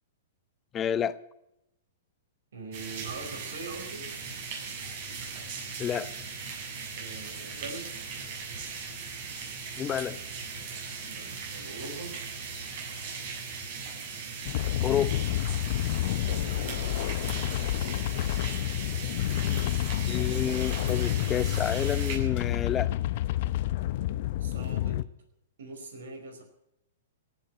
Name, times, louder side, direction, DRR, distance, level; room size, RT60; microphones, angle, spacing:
voice 1, 0.7-1.2 5.8-6.1 9.8-10.2 14.8-15.2 20.0-22.9, left 9 dB, 25° left, 0.9 m, -29 dB
voice 2, 2.5-4.1 6.9-8.0 11.0-12.2 16.3-17.0 24.4-25.0 25.6-26.4, right 3 dB, 75° right, 4.9 m, -42 dB
sound 1, 2.7-22.2, right 5 dB, 55° right, 7.9 m, -39 dB
sound 2, 14.5-25.0, left 14 dB, 55° left, 0.7 m, -29 dB
18.0 x 8.9 x 9.0 m
hypercardioid pair, 120°, 0 cm